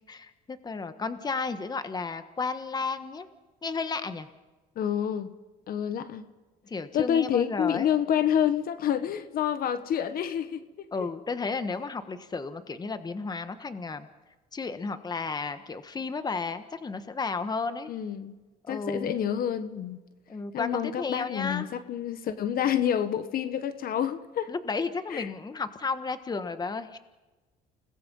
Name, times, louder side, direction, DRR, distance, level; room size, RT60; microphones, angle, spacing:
voice 1, 0.0-3.3 3.6-4.3 6.7-7.9 10.9-14.1 14.5-17.9 18.6-19.2 20.3-21.7 24.5-27.0, left 4 dB, 25° left, 10 dB, 1.4 m, -33 dB
voice 2, 4.8-5.3 5.7-6.2 6.9-10.9 17.9-18.3 18.7-20.0 20.5-24.5 25.1-25.3, left 9 dB, 60° left, 11 dB, 1.4 m, -28 dB
30.0 x 19.5 x 5.6 m, 1.2 s
cardioid pair, 110°, 17 cm